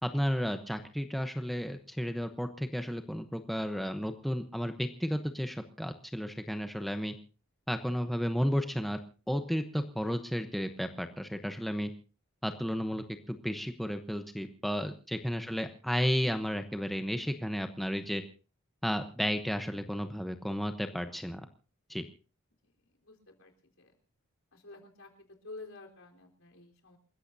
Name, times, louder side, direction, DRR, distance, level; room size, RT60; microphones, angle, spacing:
voice 1, 0.0-7.1 7.7-9.0 9.3-11.9 12.4-18.2 18.8-21.4 21.9-22.1, equal, ahead, 6 dB, 0.9 m, -33 dB
voice 2, 22.9-23.5 23.8-23.9 24.5-27.0, left 3 dB, 80° left, 1 dB, 4.1 m, -50 dB
28.5 x 15.0 x 2.8 m, 0.37 s
head